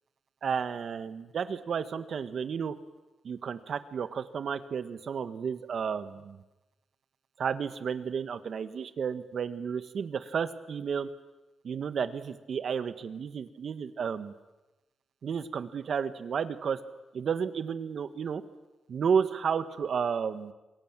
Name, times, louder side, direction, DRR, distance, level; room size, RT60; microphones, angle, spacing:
voice 1, 0.4-2.7 3.2-6.4 7.4-11.1 11.6-14.3 15.2-16.8 17.1-18.4 18.9-20.5, right 6 dB, 55° right, 12 dB, 1.6 m, -32 dB
27.5 x 22.0 x 9.1 m, 1.0 s
wide cardioid pair, 140°, 0 cm